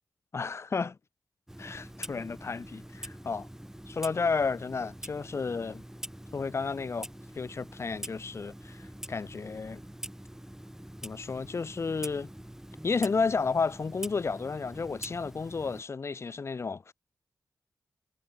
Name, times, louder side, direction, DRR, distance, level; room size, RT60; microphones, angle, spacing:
voice 1, 0.3-1.0 1.6-3.5 3.9-5.8 6.3-7.1 7.4-9.8 11.0-12.3 12.8-16.9, left 4 dB, 45° left, 0.5 m, -32 dB
Clock, 1.5-15.8, right 1 dB, 5° right, 3.6 m, -45 dB
cardioid pair, 45°, 7 cm